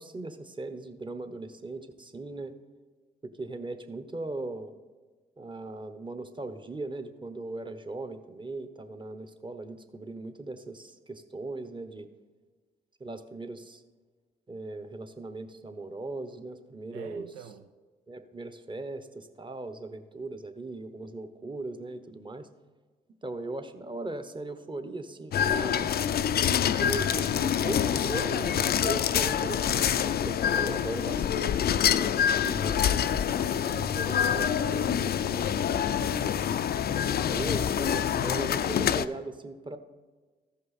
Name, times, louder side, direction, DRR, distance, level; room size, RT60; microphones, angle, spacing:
voice 1, 0.0-2.5 3.2-4.7 5.4-12.1 13.0-13.8 14.5-17.3 18.1-22.5 23.2-25.9 26.8-33.2 33.9-34.4 34.7-34.9 37.3-39.8, right 2 dB, 25° right, 1.0 m, -38 dB
voice 2, 16.9-17.6 33.6-36.5, right 8 dB, 90° right, 0.4 m, -46 dB
sound 1, 25.3-39.1, left 9 dB, 50° left, 0.4 m, -26 dB
14.0 x 5.3 x 4.2 m
hypercardioid pair, 40°, 21 cm